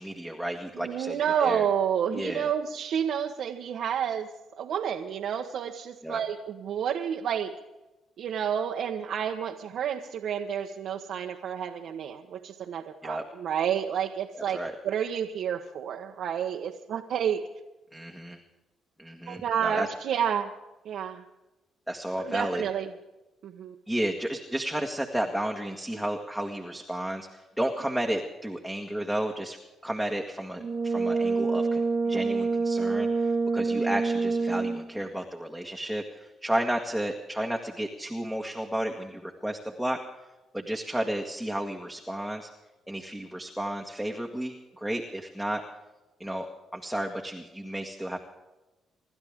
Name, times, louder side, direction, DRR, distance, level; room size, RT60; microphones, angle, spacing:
voice 1, 0.0-1.7 2.1-2.5 6.0-6.2 13.0-13.2 14.5-14.7 17.9-18.4 19.0-19.9 21.9-22.6 23.9-29.6 29.8-40.0 40.5-42.5 42.9-45.6 46.2-46.5 46.7-48.2, right 1 dB, ahead, 2 dB, 1.8 m, -32 dB
voice 2, 0.7-4.3 4.6-7.5 8.2-17.4 19.3-20.5 20.8-21.2 22.2-22.9 23.4-23.7, right 8 dB, 70° right, 1 dB, 1.2 m, -30 dB
Brass instrument, 30.6-35.0, right 4 dB, 40° right, 1.4 m, -26 dB
27.5 x 12.5 x 3.7 m, 1.0 s
cardioid pair, 90°, 0 cm